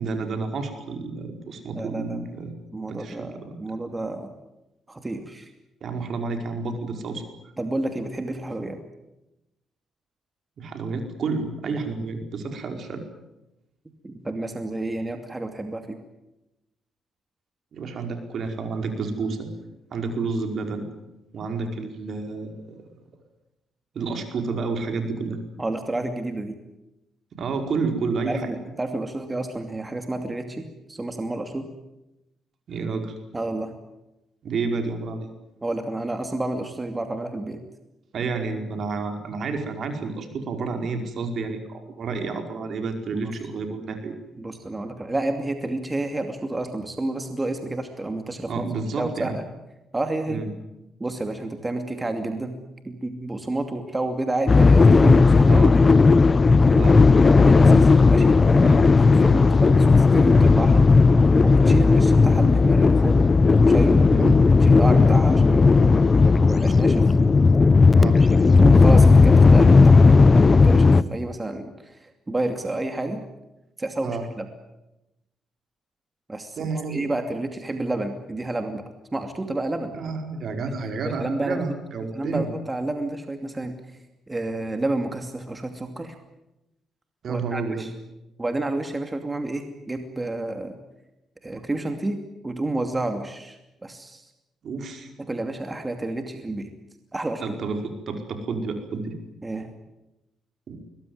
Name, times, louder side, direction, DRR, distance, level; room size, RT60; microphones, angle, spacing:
voice 1, 0.0-2.5 2.9-3.5 5.8-7.2 10.6-13.0 17.7-19.5 19.9-20.8 21.3-22.8 23.9-25.4 27.3-28.5 32.7-33.2 34.4-35.3 38.1-44.1 48.5-49.4 50.3-50.5 55.4-55.8 56.7-57.1 58.6-58.8 64.1-64.3 67.9-68.2 74.0-74.2 76.6-77.1 79.9-82.5 87.2-87.9 91.5-91.6 94.6-95.1 97.4-99.1 100.7-100.8, right 4 dB, 60° right, 5 dB, 5.0 m, -30 dB
voice 2, 1.7-2.3 2.7-4.3 4.9-5.5 7.6-8.8 14.0-16.0 25.6-26.6 28.3-31.7 33.3-33.7 35.6-37.6 43.1-43.3 44.4-48.5 49.0-49.4 49.9-50.4 51.0-52.6 52.8-55.6 55.9-56.1 57.2-58.8 59.2-59.9 60.1-60.9 61.4-63.3 63.6-64.0 64.6-65.8 66.4-67.1 68.2-70.1 70.3-73.2 73.8-74.5 76.3-78.8 79.1-79.9 81.0-81.7 82.1-83.7 84.3-86.2 87.3-87.9 88.4-90.7 91.4-94.3 95.2-96.7 97.1-97.4 99.4-99.7, right 2 dB, 20° right, 6 dB, 2.6 m, -30 dB
sound 1, 54.5-71.0, left 4 dB, 30° left, 0.9 m, -15 dB
22.5 x 20.0 x 9.6 m, 0.93 s
cardioid pair, 90°, 0 cm